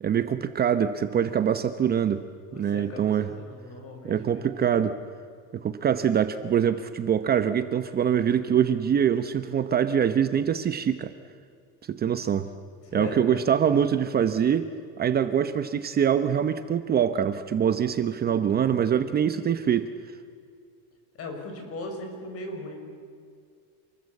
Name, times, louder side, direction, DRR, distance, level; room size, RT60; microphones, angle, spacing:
voice 1, 0.0-2.2 2.5-3.3 4.0-4.9 5.5-11.1 11.9-12.5 12.9-14.7 15.0-19.9, right 8 dB, 25° right, 10 dB, 0.9 m, -24 dB
voice 2, 2.5-4.5 12.8-13.5 21.1-22.8, left 2 dB, 40° left, 3 dB, 6.5 m, -38 dB
28.0 x 21.0 x 8.4 m, 2.2 s
cardioid pair, 155°, 35 cm